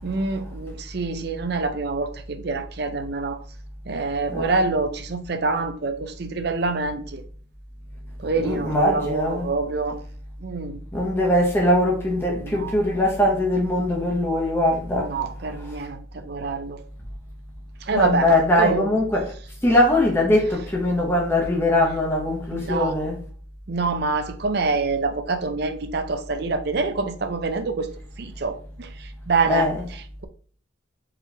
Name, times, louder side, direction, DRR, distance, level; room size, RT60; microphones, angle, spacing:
voice 1, 0.0-3.4 3.9-7.2 8.2-10.0 10.4-10.8 12.3-12.7 14.9-16.8 17.8-18.9 22.5-23.0 23.7-27.9 28.2-29.7, right 3 dB, 55° right, 0.5 m, -26 dB
voice 2, 4.3-4.6 8.4-9.5 10.9-15.1 15.6-15.7 17.9-19.3 19.6-23.2 29.5-29.8, left 1 dB, 10° left, 1.0 m, -21 dB
4.9 x 3.2 x 3.3 m
head